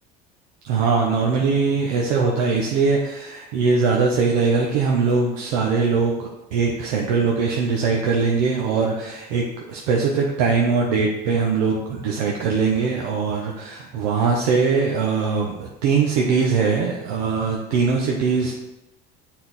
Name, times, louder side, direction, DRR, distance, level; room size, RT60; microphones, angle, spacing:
voice 1, 0.6-18.6, right 5 dB, 90° right, -1 dB, 0.9 m, -21 dB
7.4 x 4.5 x 4.1 m, 1.0 s
supercardioid pair, 115°, 21 cm